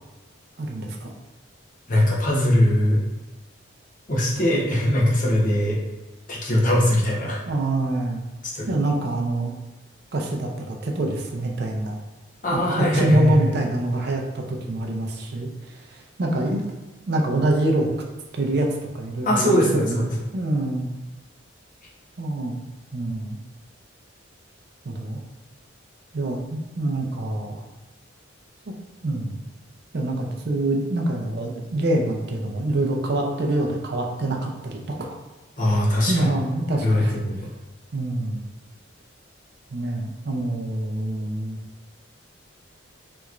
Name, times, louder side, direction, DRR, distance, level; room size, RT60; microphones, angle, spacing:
voice 1, 0.6-1.1 7.5-8.2 8.7-9.5 10.1-12.0 12.5-15.5 15.9-16.6 17.1-17.9 18.3-18.7 18.9-20.0 20.3-20.9 22.2-22.6 22.9-23.4 24.8-25.2 26.1-27.6 29.0-29.4 29.9-35.2 36.1-37.1 37.9-38.4 39.7-41.6, right 1 dB, 55° right, 0 dB, 0.5 m, -25 dB
voice 2, 1.9-3.0 4.1-5.8 6.3-7.4 8.4-8.7 12.4-13.7 19.2-20.1 35.6-36.3 36.8-37.5, left 1 dB, 40° left, -4 dB, 0.7 m, -21 dB
3.4 x 3.0 x 2.4 m, 1.1 s
head